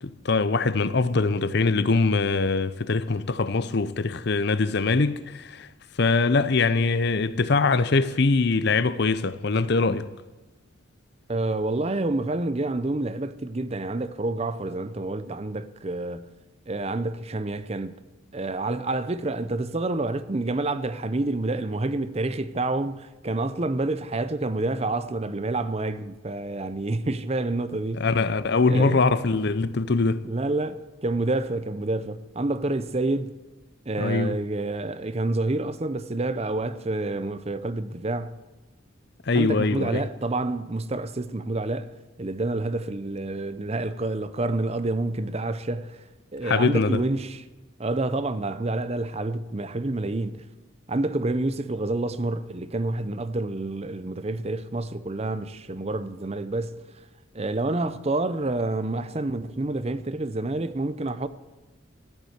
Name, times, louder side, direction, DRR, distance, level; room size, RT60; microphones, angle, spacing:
voice 1, 0.0-5.7 6.0-10.1 28.0-30.2 34.0-34.4 39.3-40.0 46.4-47.0, left 3 dB, 55° left, 0.6 m, -23 dB
voice 2, 11.3-16.3 16.7-18.0 18.3-28.1 28.7-29.0 30.2-33.4 33.9-38.4 39.3-46.0 46.3-47.4 47.8-50.5 50.9-56.9 57.3-61.3, right 2 dB, 30° right, 0.6 m, -28 dB
14.0 x 11.5 x 8.0 m
head